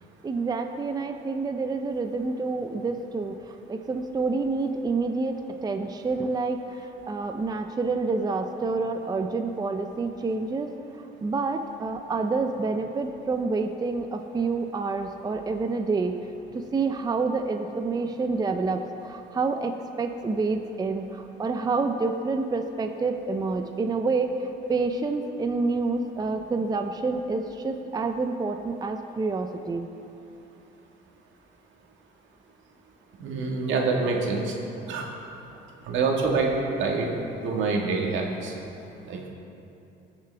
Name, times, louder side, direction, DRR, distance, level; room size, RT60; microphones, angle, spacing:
voice 1, 0.2-10.7 10.9-16.2 16.5-29.9, right 3 dB, 20° right, 6 dB, 0.5 m, -28 dB
voice 2, 33.2-34.5 34.9-35.1 35.9-37.1 37.4-38.5 39.0-39.3, right 4 dB, 75° right, 0 dB, 1.7 m, -26 dB
19.0 x 6.8 x 3.4 m, 2.8 s
cardioid pair, 95°, 20 cm